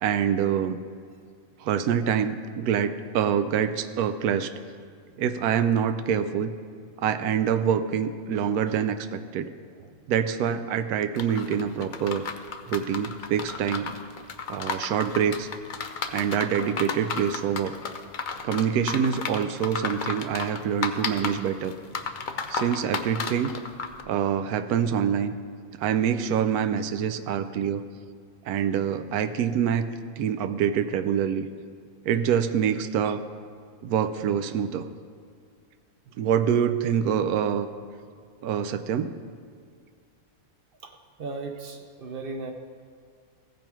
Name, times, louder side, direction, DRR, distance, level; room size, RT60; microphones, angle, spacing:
voice 1, 0.0-0.8 1.6-4.5 5.2-6.5 7.0-9.5 10.1-12.2 12.7-13.9 14.5-15.5 16.1-17.7 18.4-21.7 22.5-23.5 24.1-25.3 25.8-27.8 28.5-29.9 30.2-31.5 32.1-33.2 33.8-34.9 36.2-37.7 38.4-39.1, right 8 dB, 85° right, 10 dB, 1.1 m, -25 dB
sound 1, 11.2-24.0, left 5 dB, 75° left, 0.4 m, -33 dB
voice 2, 41.2-42.5, right 3 dB, 55° right, 5 dB, 0.6 m, -36 dB
15.0 x 5.3 x 4.5 m, 2.2 s
omnidirectional pair, 1.6 m